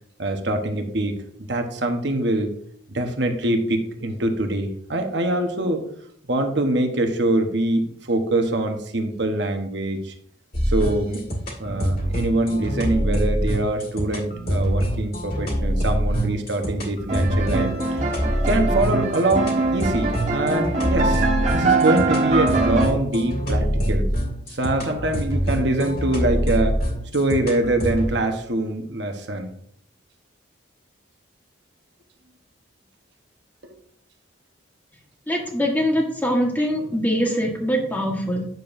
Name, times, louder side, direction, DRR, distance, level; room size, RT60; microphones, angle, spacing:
voice 1, 0.2-1.2 1.5-2.5 2.9-5.8 6.3-10.1 10.7-11.2 11.6-18.0 18.4-21.2 21.5-24.1 24.5-26.8 27.1-29.5 33.6-33.7, right 1 dB, 60° right, 4 dB, 1.1 m, -24 dB
sound 1, 10.5-28.1, equal, 50° left, 1.9 m, -25 dB
sound 2, 17.1-22.9, right 3 dB, 35° right, 1.2 m, -23 dB
voice 2, 35.3-38.4, equal, 10° left, 0 dB, 1.4 m, -23 dB
9.2 x 6.9 x 2.6 m, 0.67 s
head